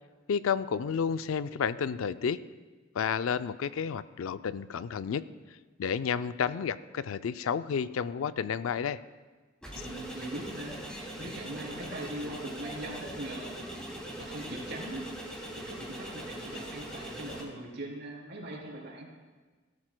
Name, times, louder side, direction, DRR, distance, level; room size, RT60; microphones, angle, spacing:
voice 1, 0.3-2.4 2.9-5.2 5.8-9.0, left 7 dB, 90° left, 14 dB, 0.4 m, -31 dB
sound 1, 9.6-17.4, right 1 dB, 5° left, 2.6 m, -41 dB
voice 2, 9.7-10.8 11.2-13.5 14.2-15.1 15.5-19.1, right 1 dB, 60° right, -2 dB, 3.3 m, -41 dB
17.5 x 13.0 x 2.2 m, 1.3 s
head